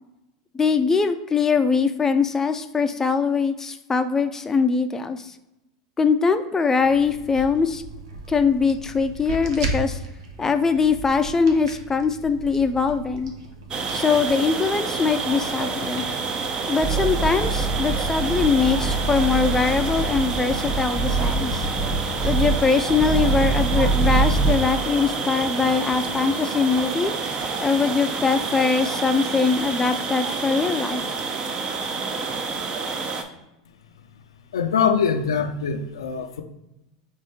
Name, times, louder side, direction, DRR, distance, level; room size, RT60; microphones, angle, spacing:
voice 1, 0.5-5.3 6.0-7.8 8.3-10.0 10.4-13.3 13.9-16.0 16.7-21.7 22.2-27.1 27.6-31.0, left 5 dB, 15° left, 8 dB, 0.4 m, -22 dB
sound 1, 6.8-18.9, right 2 dB, 70° right, 0.7 m, -37 dB
sound 2, 13.7-33.2, right 4 dB, 35° right, 0.6 m, -28 dB
sound 3, 16.8-24.6, right 3 dB, ahead, 0.9 m, -24 dB
voice 2, 34.5-36.4, left 6 dB, 80° left, 6 dB, 0.4 m, -23 dB
3.4 x 2.6 x 4.2 m, 0.93 s
hypercardioid pair, 90°, 3 cm